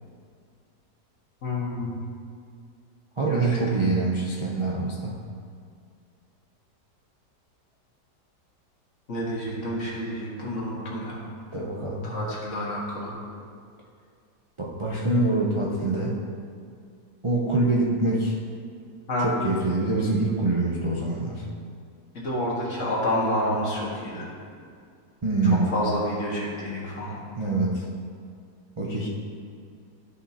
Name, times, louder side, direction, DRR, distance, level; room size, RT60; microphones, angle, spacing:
voice 1, 1.4-2.0 3.3-3.6 9.1-11.3 12.0-13.2 19.1-19.3 22.1-24.3 25.4-27.2, left 1 dB, 50° left, -5 dB, 1.9 m, -29 dB
voice 2, 3.2-5.3 11.5-12.2 14.6-16.2 17.2-18.4 19.2-21.5 25.2-25.7 27.3-27.9 28.8-29.1, right 2 dB, 50° right, -4 dB, 0.3 m, -25 dB
12.5 x 5.6 x 2.8 m, 2.2 s
omnidirectional pair, 1.8 m